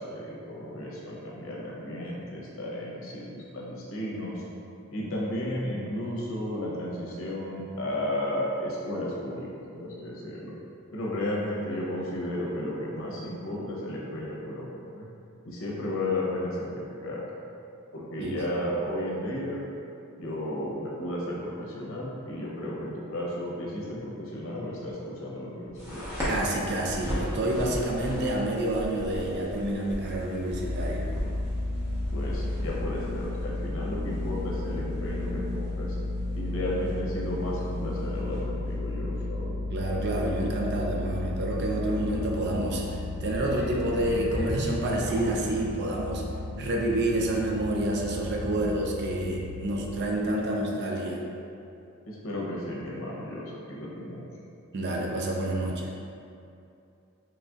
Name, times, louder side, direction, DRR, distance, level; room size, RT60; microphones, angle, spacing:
voice 1, 0.0-4.4 4.9-10.6 10.9-15.1 15.4-17.3 17.9-19.6 20.2-26.1 32.1-36.0 36.3-39.5 52.0-54.3, left 1 dB, 70° left, -4 dB, 0.8 m, -33 dB
sound 1, 25.7-39.2, equal, 10° right, 1.0 m, -38 dB
voice 2, 26.3-31.1 39.7-46.2 46.6-51.2 54.7-55.9, right 1 dB, 50° right, -1 dB, 0.5 m, -28 dB
sound 2, 30.5-50.1, left 2 dB, 85° left, 0.4 m, -33 dB
sound 3, 43.1-45.7 46.3-46.4, equal, 50° left, 1.2 m, -37 dB
3.9 x 3.2 x 2.4 m, 2.6 s
head